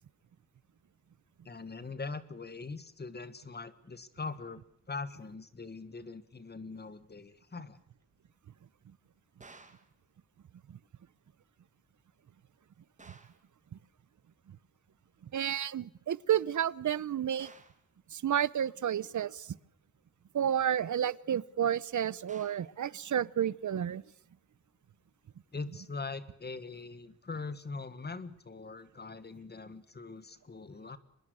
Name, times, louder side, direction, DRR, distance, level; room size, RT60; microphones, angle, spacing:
voice 1, 1.4-7.8 25.5-31.0, left 4 dB, 35° left, 14 dB, 1.6 m, -42 dB
sound 1, 9.4-9.9 13.0-13.5 17.4-17.9 22.3-22.7, right 3 dB, 25° right, 2.2 m, -55 dB
voice 2, 15.3-17.5 18.1-19.5 20.3-24.0, right 9 dB, 90° right, 21 dB, 0.8 m, -31 dB
24.5 x 21.5 x 6.3 m, 0.72 s
wide cardioid pair, 175°, 29 cm